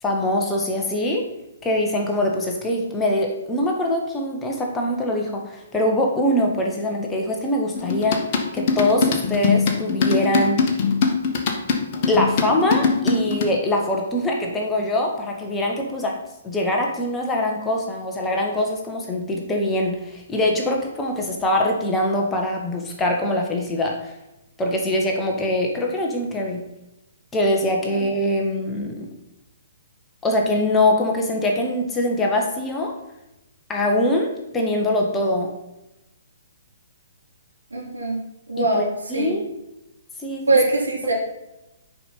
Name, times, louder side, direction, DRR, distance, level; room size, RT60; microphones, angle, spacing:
voice 1, 0.0-1.2 1.6-8.2 8.5-10.6 12.1-16.1 16.4-24.1 24.6-26.6 27.3-29.1 30.2-32.9 33.7-35.5 38.6-38.8 39.1-39.5 40.2-40.5, left 1 dB, 10° left, 0 dB, 1.6 m, -23 dB
sound 1, 7.7-13.4, left 5 dB, 35° left, 1.5 m, -22 dB
voice 2, 37.7-38.2 38.5-39.3 40.5-41.1, right 2 dB, 75° right, -2 dB, 3.5 m, -22 dB
10.5 x 5.5 x 5.8 m, 0.94 s
figure-of-eight pair, 125°, 0 cm